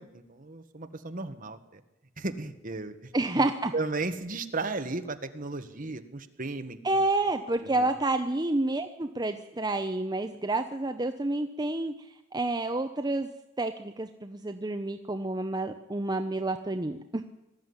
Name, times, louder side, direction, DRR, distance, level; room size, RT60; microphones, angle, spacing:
voice 1, 0.0-1.8 2.2-2.9 3.3-3.4 3.7-7.0 7.8-7.9, right 3 dB, 40° right, 8 dB, 1.5 m, -35 dB
voice 2, 3.1-3.7 6.8-12.1 12.3-13.3 13.6-17.3, right 2 dB, 20° right, 7 dB, 0.8 m, -29 dB
19.5 x 13.5 x 9.7 m, 0.96 s
head